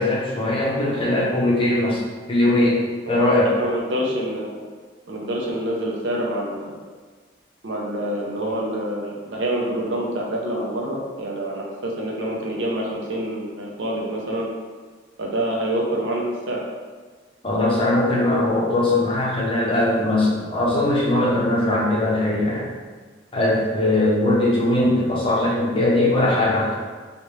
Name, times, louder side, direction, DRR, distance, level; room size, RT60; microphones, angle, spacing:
voice 1, 0.0-2.0 2.3-2.8 3.1-3.5 10.6-10.7 17.4-22.7 23.3-26.8, left 1 dB, 30° left, -5 dB, 0.7 m, -20 dB
voice 2, 3.4-4.5 5.1-6.8 7.6-14.5 15.2-16.6, right 1 dB, 75° right, -2 dB, 0.6 m, -26 dB
3.1 x 2.4 x 3.1 m, 1.4 s
head